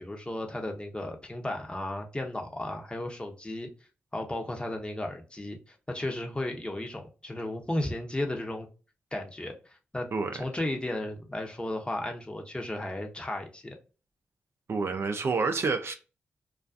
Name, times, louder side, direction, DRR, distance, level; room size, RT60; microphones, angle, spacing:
voice 1, 0.0-3.7 4.1-8.7 9.1-9.5 9.9-10.1 10.3-13.8, left 1 dB, 20° left, 0.8 m, -34 dB
voice 2, 14.7-15.9, right 4 dB, 55° right, 0.4 m, -28 dB
2.4 x 2.3 x 2.4 m
supercardioid pair, 40°, 5 cm